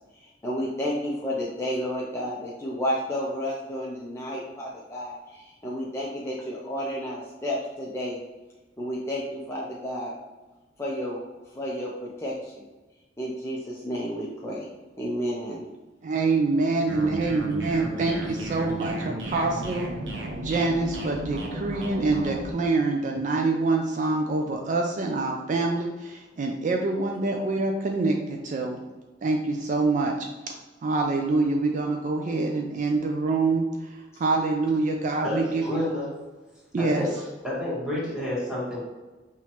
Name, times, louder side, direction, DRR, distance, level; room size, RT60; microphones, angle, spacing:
voice 1, 0.2-8.2 8.8-10.1 10.8-11.2 11.5-12.6 13.2-14.7 15.0-15.6 18.1-18.2, equal, 15° left, -5 dB, 0.5 m, -31 dB
voice 2, 16.0-19.9 20.4-28.8 29.2-30.3 30.8-35.9 36.7-37.1, right 3 dB, 40° right, 2 dB, 0.3 m, -25 dB
sound 1, 16.9-22.5, right 1 dB, 80° right, 0.8 m, -34 dB
voice 3, 35.2-36.1 36.8-38.8, left 1 dB, 5° right, -8 dB, 1.5 m, -30 dB
5.6 x 3.1 x 2.9 m, 1.2 s
head